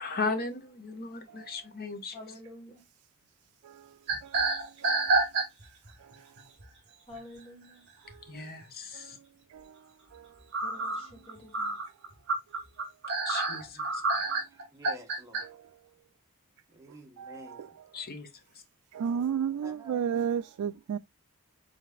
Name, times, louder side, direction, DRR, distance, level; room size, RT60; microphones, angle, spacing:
voice 1, 0.0-2.2 8.3-9.2 13.2-14.3 17.9-18.3, left 3 dB, 45° left, 1.0 m, -36 dB
voice 2, 2.1-2.8 7.1-7.8 10.6-11.8, left 1 dB, 25° left, 1.7 m, -48 dB
sound 1, 4.1-5.9 6.4-6.6 8.1-8.2 8.6-8.7 10.5-15.4, right 3 dB, 55° right, 1.9 m, -28 dB
voice 3, 4.2-4.9 8.1-8.5 9.5-9.7 10.1-10.3 15.4-15.6 17.2-17.7 18.9-21.0, right 8 dB, 85° right, 0.3 m, -33 dB
voice 4, 14.7-15.4 16.7-17.7 19.6-20.2, equal, 15° right, 1.2 m, -49 dB
5.0 x 4.0 x 2.4 m
head